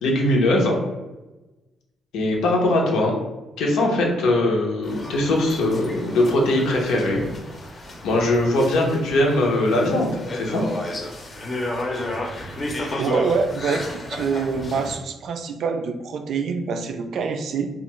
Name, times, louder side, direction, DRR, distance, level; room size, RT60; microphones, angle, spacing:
voice 1, 0.0-0.7 2.1-3.1 3.6-7.2 8.0-10.6, left 1 dB, 85° left, -1 dB, 0.7 m, -20 dB
sound 1, 4.8-15.0, left 1 dB, 35° left, 0.6 m, -32 dB
voice 2, 13.0-13.8 14.1-17.7, right 5 dB, 70° right, 6 dB, 0.3 m, -25 dB
2.5 x 2.4 x 3.0 m, 1.1 s
cardioid pair, 90°, 0 cm